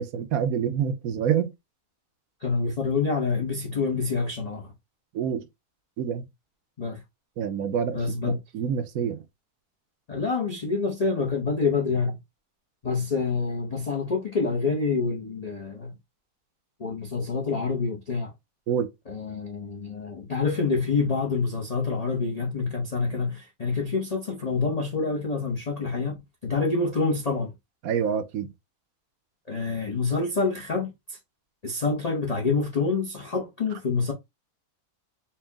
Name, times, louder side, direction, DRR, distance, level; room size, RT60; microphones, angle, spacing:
voice 1, 0.0-1.5 5.1-5.4 6.0-6.2 7.4-8.0 8.2-9.2 18.7-18.9 27.8-28.5, right 8 dB, 70° right, 1.1 m, -27 dB
voice 2, 2.4-4.7 6.8-7.0 7.9-8.4 10.1-12.2 12.8-15.9 16.8-18.3 19.1-26.2 26.4-27.5 29.5-31.2 31.6-34.1, left 4 dB, 35° left, 0.7 m, -27 dB
4.5 x 2.3 x 3.4 m
omnidirectional pair, 1.6 m